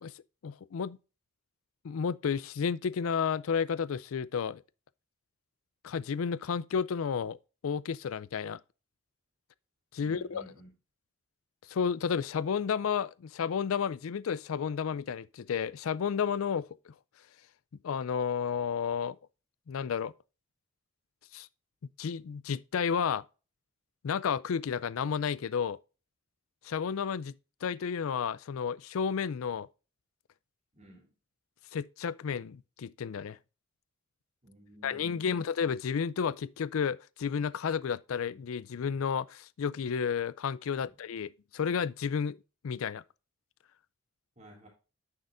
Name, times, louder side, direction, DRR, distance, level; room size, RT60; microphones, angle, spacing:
voice 1, 0.4-1.0 1.8-4.6 5.8-7.4 7.6-8.6 9.9-10.4 11.7-16.9 17.8-19.2 19.7-20.1 21.3-21.5 22.0-23.2 24.0-25.8 26.6-27.3 27.6-29.7 31.7-33.4 34.8-42.4 42.6-43.0, left 6 dB, 90° left, 0.4 m, -32 dB
voice 2, 10.0-10.7 30.7-31.1 34.4-35.4 40.8-40.9 44.4-44.7, equal, 35° right, 3.1 m, -54 dB
9.7 x 6.5 x 2.6 m
head